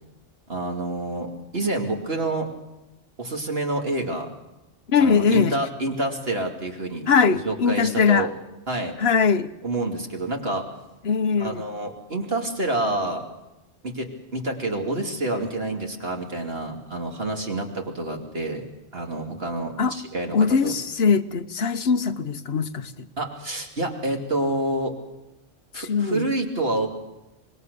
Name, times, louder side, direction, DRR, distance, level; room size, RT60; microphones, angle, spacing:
voice 1, 0.5-2.5 3.2-4.3 5.0-8.3 8.7-8.9 9.6-10.6 11.4-13.3 13.8-18.6 18.9-20.4 20.6-20.7 23.2-24.9 25.7-26.9, right 2 dB, 55° right, 2 dB, 2.9 m, -28 dB
voice 2, 4.9-5.6 7.1-8.3 9.0-9.5 11.0-11.6 19.8-19.9 20.3-22.9 25.8-26.3, left 5 dB, 60° left, 9 dB, 1.2 m, -21 dB
25.0 x 20.5 x 6.8 m, 0.97 s
omnidirectional pair, 1.2 m